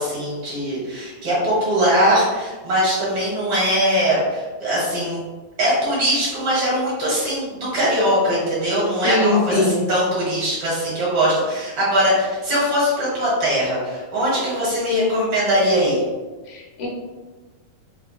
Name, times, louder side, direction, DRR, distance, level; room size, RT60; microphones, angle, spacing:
voice 1, 0.0-5.2 5.6-16.0, equal, 55° right, -7 dB, 1.7 m, -21 dB
voice 2, 9.0-9.8 16.5-16.9, left 2 dB, 80° left, -4 dB, 2.5 m, -21 dB
5.9 x 2.2 x 2.3 m, 1.3 s
omnidirectional pair, 4.0 m